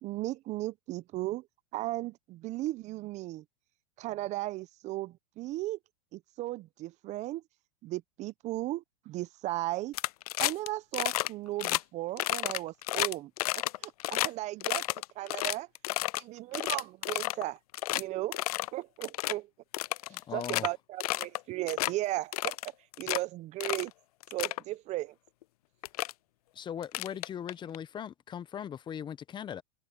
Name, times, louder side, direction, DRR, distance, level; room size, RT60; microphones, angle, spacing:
voice 1, 0.0-1.5 1.7-3.4 4.0-5.8 6.1-7.4 7.8-9.9 10.4-14.8 15.2-15.7 16.2-17.6 17.9-18.4 18.7-19.5 20.3-22.7 23.0-23.9 24.3-25.1, right 17 dB, 35° right, 0.7 m, -36 dB
sound 1, 9.9-10.7 10.9-11.3 11.6-11.8 12.2-14.3 14.6-16.2 16.5-17.4 17.7-18.0 18.3-18.7 19.0-19.3 19.7-20.7 21.0-21.4 21.7-21.9 22.3-23.2 23.6-23.9 24.2-24.6 25.4-25.5 25.8-26.1 26.8-27.8, left 16 dB, 75° left, 0.4 m, -31 dB
voice 2, 20.1-20.7 26.5-29.6, left 9 dB, 25° left, 0.9 m, -39 dB
hypercardioid pair, 115°, 19 cm